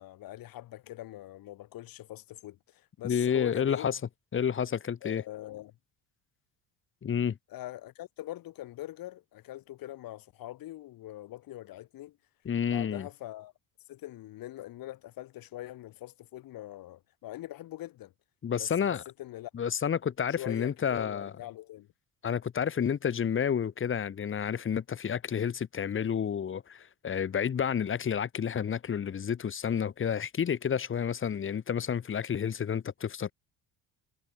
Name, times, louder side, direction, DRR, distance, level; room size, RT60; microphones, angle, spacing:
voice 1, 0.0-3.9 5.0-5.8 7.5-12.2 12.7-13.5 13.9-18.1 18.6-19.5 20.4-21.9, left 15 dB, 65° left, 6.1 m, -43 dB
voice 2, 3.0-4.0 4.3-5.2 7.0-7.4 12.4-13.1 18.4-19.0 19.5-21.3 22.2-33.3, left 8 dB, 30° left, 4.2 m, -30 dB
cardioid pair, 160°, 37 cm